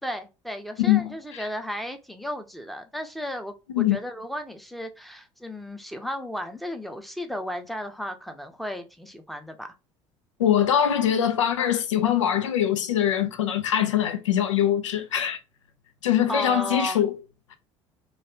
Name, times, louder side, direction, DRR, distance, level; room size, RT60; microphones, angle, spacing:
voice 1, 0.0-9.7 16.3-17.0, equal, ahead, 0.7 m, -34 dB
voice 2, 0.8-1.5 3.7-4.0 10.4-15.4 16.0-17.1, left 10 dB, 85° left, 0.5 m, -23 dB
3.2 x 2.6 x 2.8 m
hypercardioid pair, 65°, 15 cm